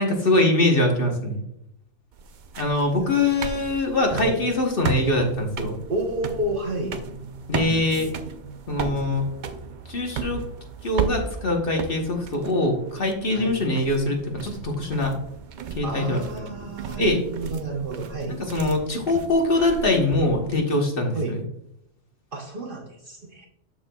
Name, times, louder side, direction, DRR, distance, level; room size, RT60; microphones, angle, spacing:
voice 1, 0.0-1.4 2.6-5.8 7.5-8.1 8.7-9.2 9.9-10.4 10.8-15.1 15.8-16.2 17.0-17.2 18.5-21.4, left 2 dB, 45° left, 1 dB, 1.1 m, -23 dB
sound 1, 2.1-20.5, right 6 dB, 75° right, 0.4 m, -35 dB
voice 2, 2.9-4.4 5.9-7.0 13.3-13.6 15.8-18.4 21.1-21.4 22.3-23.5, right 2 dB, 45° right, 1 dB, 0.9 m, -31 dB
12.5 x 4.3 x 2.2 m, 0.81 s
omnidirectional pair, 1.5 m